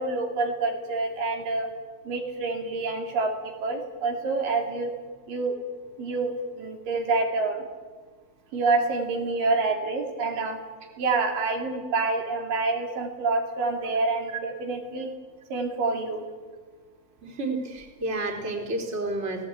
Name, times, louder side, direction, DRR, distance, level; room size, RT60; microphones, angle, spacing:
voice 1, 0.0-1.7 2.1-4.9 5.3-5.6 6.0-7.6 8.5-10.6 11.0-15.1 15.5-16.3, right 3 dB, 70° right, 2 dB, 4.2 m, -27 dB
voice 2, 17.2-19.5, right 2 dB, 20° right, 2 dB, 3.5 m, -30 dB
28.5 x 18.0 x 8.7 m, 1.5 s
omnidirectional pair, 4.1 m